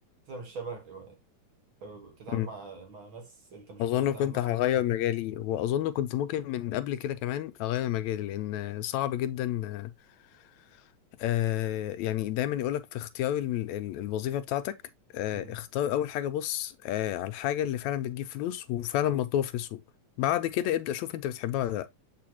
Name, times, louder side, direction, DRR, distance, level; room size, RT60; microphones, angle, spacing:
voice 1, 0.3-1.2 1.8-4.7 15.3-15.6, right 3 dB, 55° right, 1.8 m, -43 dB
voice 2, 3.8-9.9 11.2-14.8 15.1-19.8 20.2-21.9, left 12 dB, 80° left, 1.9 m, -30 dB
7.6 x 4.7 x 2.8 m
omnidirectional pair, 3.3 m